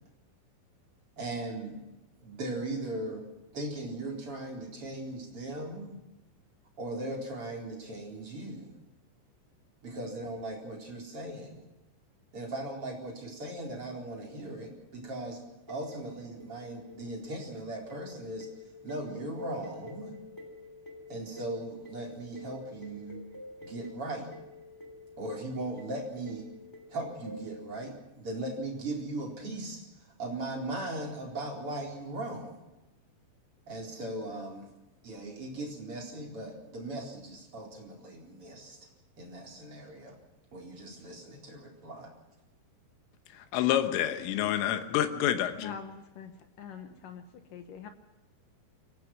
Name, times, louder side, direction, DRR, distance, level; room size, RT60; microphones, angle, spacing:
voice 1, 1.2-1.8 2.2-3.2 3.5-6.0 6.8-8.7 9.8-11.6 12.3-15.4 15.7-18.5 18.8-20.2 21.1-23.2 23.6-24.3 25.2-26.4 26.9-32.6 33.7-34.7 35.0-38.8 39.2-40.2 40.5-42.1, right 2 dB, 30° right, 0 dB, 4.7 m, -38 dB
sound 1, 15.7-28.0, left 2 dB, 5° left, 2.3 m, -49 dB
voice 2, 43.3-45.7, left 11 dB, 90° left, 8 dB, 3.8 m, -28 dB
voice 3, 45.6-47.9, left 6 dB, 70° left, 7 dB, 2.1 m, -45 dB
23.5 x 19.0 x 6.0 m, 0.99 s
omnidirectional pair, 5.6 m